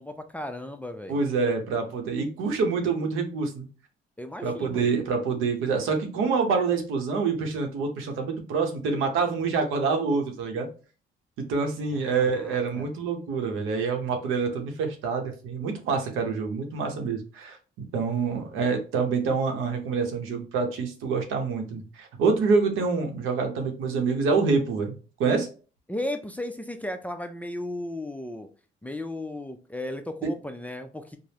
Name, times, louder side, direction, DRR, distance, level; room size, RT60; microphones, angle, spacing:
voice 1, 0.0-1.2 4.2-4.9 11.9-12.9 25.9-28.5 28.8-31.2, left 1 dB, 5° left, 7 dB, 0.4 m, -35 dB
voice 2, 1.1-3.7 4.4-10.7 11.4-17.6 17.9-24.9 25.2-25.5 30.2-30.3, right 4 dB, 90° right, 4 dB, 0.7 m, -26 dB
3.4 x 2.0 x 2.8 m, 0.35 s
cardioid pair, 90°, 20 cm